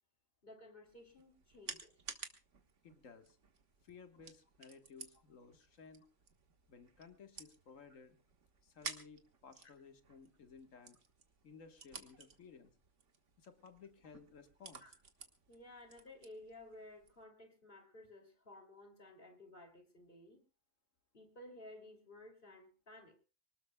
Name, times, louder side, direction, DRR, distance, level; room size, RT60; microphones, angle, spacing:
voice 1, 0.4-2.0 7.9-8.0 14.8-14.9 15.5-20.4 21.1-23.2, left 1 dB, 40° left, 4 dB, 3.2 m, -56 dB
sound 1, 0.8-17.2, right 5 dB, 65° right, 1.8 m, -54 dB
voice 2, 2.8-3.4 3.8-6.1 6.7-8.2 8.6-11.0 11.4-12.7 13.4-14.9, left 5 dB, 75° left, 7 dB, 1.8 m, -57 dB
25.0 x 19.0 x 2.2 m, 0.32 s
omnidirectional pair, 1.4 m